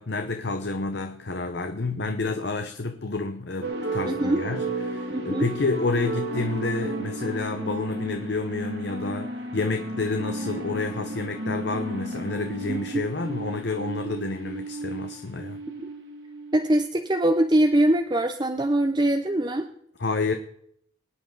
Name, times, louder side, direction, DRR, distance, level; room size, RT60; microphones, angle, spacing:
voice 1, 0.0-15.6 20.0-20.3, left 3 dB, 60° left, 0.8 m, -29 dB
sound 1, 3.6-17.0, right 1 dB, 70° right, 2.2 m, -33 dB
voice 2, 4.1-4.4 5.1-5.5 12.7-13.0 15.8-15.9 16.5-19.7, right 1 dB, 20° right, 0.6 m, -23 dB
24.0 x 9.5 x 4.0 m
head